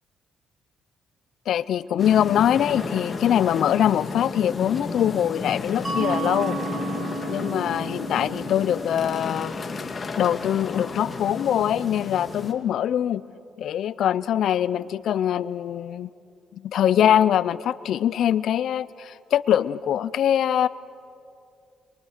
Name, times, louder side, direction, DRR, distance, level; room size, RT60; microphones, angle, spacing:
voice 1, 1.5-6.6 7.3-9.5 10.2-13.2 13.6-16.1 16.5-20.7, left 10 dB, 70° left, 18 dB, 0.5 m, -23 dB
sound 1, 2.0-12.5, left 4 dB, 35° left, 2.0 m, -33 dB
Guitar, 2.2-10.4, equal, 45° right, 7.5 m, -42 dB
Mallet percussion, 5.8-11.2, right 4 dB, 25° right, 4.4 m, -35 dB
24.0 x 23.0 x 6.6 m, 2.4 s
cardioid pair, 90°, 0 cm